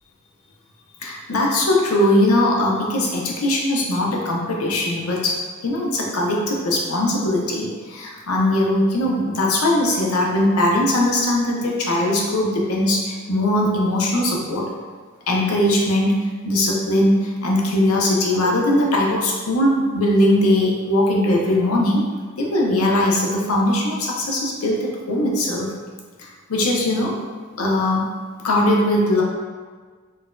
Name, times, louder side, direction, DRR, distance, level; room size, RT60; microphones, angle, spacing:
voice 1, 1.0-5.4 5.6-14.7 15.3-16.2 16.4-22.0 22.4-25.7 26.2-27.2 27.6-28.0 28.4-29.2, left 1 dB, 85° left, -2 dB, 0.6 m, -20 dB
3.9 x 2.5 x 2.2 m, 1.5 s
head